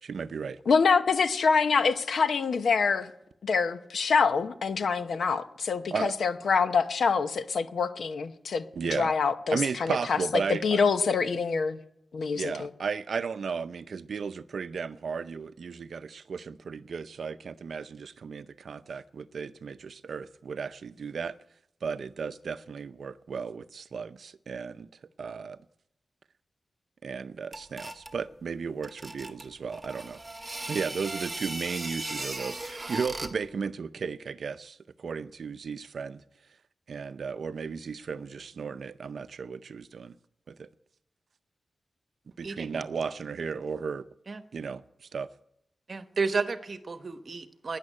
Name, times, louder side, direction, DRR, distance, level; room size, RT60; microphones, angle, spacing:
voice 1, 0.0-0.6 5.9-6.2 8.8-9.1 9.5-10.8 12.4-21.4 21.8-24.9 25.2-25.6 27.0-30.2 30.7-36.2 36.9-40.1 40.5-40.7 42.4-44.1 44.5-44.8 45.1-45.3, right 5 dB, 70° right, 0.6 m, -34 dB
voice 2, 0.7-3.1 3.4-10.2 10.5-11.8 12.1-12.7, left 5 dB, 75° left, 0.9 m, -26 dB
sound 1, 27.5-28.2 28.8-33.5, right 2 dB, 20° right, 1.2 m, -37 dB
voice 3, 42.4-42.8 44.3-44.4 45.9-47.8, right 4 dB, 45° right, 1.0 m, -32 dB
13.0 x 9.7 x 9.9 m
wide cardioid pair, 105°, 0 cm